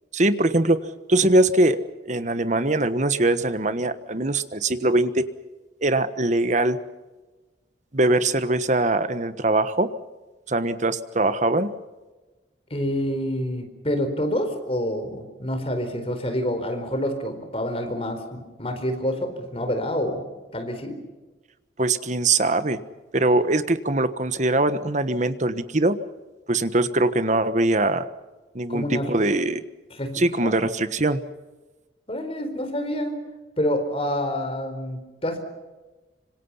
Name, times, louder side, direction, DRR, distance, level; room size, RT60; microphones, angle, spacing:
voice 1, 0.1-1.8 2.1-5.3 5.8-6.8 7.9-9.9 10.5-11.7 21.8-22.8 23.1-26.0 26.5-28.1 28.5-29.6 30.1-31.2, right 2 dB, 45° right, 11 dB, 1.3 m, -22 dB
voice 2, 12.7-20.2 20.5-21.0 28.7-29.1 30.0-30.6 32.1-33.2 33.6-35.4, equal, 35° left, 7 dB, 4.5 m, -27 dB
26.0 x 26.0 x 5.7 m, 1.2 s
head